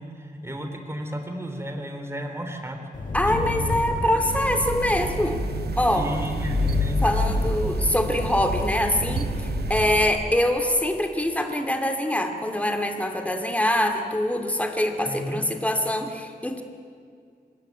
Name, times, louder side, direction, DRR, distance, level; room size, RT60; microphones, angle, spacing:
voice 1, 0.0-2.8 3.2-3.6 5.9-7.5 15.1-15.4, equal, 15° right, 5 dB, 3.6 m, -34 dB
Engine, 2.9-10.0, left 2 dB, 55° left, 5.6 m, -28 dB
voice 2, 3.1-5.5 5.8-6.1 7.0-16.6, left 1 dB, 10° left, 5 dB, 2.6 m, -24 dB
sound 1, 4.3-10.1, right 8 dB, 90° right, 0.7 m, -33 dB
25.0 x 21.0 x 9.5 m, 2.2 s
wide cardioid pair, 100°, 16 cm